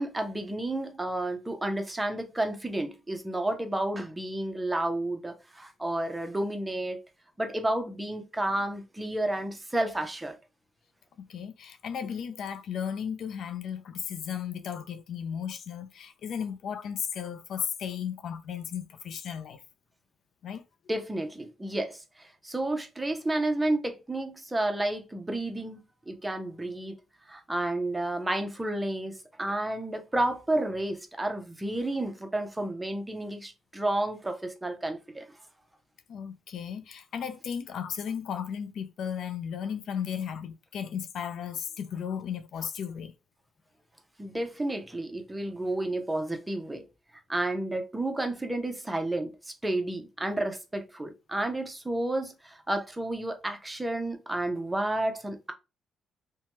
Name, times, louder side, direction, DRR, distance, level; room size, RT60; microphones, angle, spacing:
voice 1, 0.0-7.0 7.4-10.4 20.9-26.9 27.3-35.3 44.2-46.9 47.3-55.5, right 1 dB, 15° right, 0.6 m, -31 dB
voice 2, 11.2-19.6 20.4-20.6 36.1-43.1, left 8 dB, 70° left, 0.3 m, -35 dB
2.9 x 2.2 x 2.8 m
cardioid pair, 90°, 0 cm